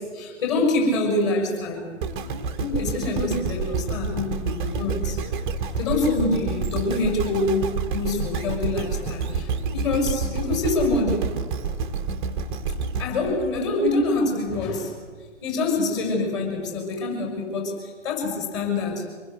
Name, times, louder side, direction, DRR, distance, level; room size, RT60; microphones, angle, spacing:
voice 1, 0.0-1.9 2.6-5.2 5.8-11.3 13.0-14.9 15.4-19.1, left 2 dB, 25° left, 1 dB, 6.6 m, -25 dB
sound 1, 2.0-14.2 14.7-14.8, right 4 dB, 10° right, 1.1 m, -29 dB
25.0 x 20.0 x 8.1 m, 1.5 s
figure-of-eight pair, 135°, 37 cm